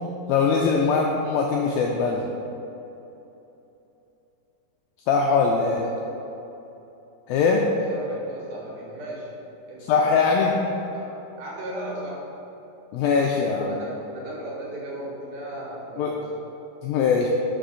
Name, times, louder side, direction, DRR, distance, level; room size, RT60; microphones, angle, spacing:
voice 1, 0.3-2.2 5.1-5.8 7.3-7.6 9.9-10.5 12.9-13.8 16.0-16.1 16.8-17.3, left 5 dB, 85° left, 0 dB, 2.1 m, -21 dB
voice 2, 5.7-6.4 7.4-9.4 9.7-10.1 10.5-12.3 13.7-16.4, right 1 dB, 70° right, -4 dB, 3.1 m, -37 dB
6.1 x 5.1 x 6.3 m, 2.9 s
omnidirectional pair, 4.7 m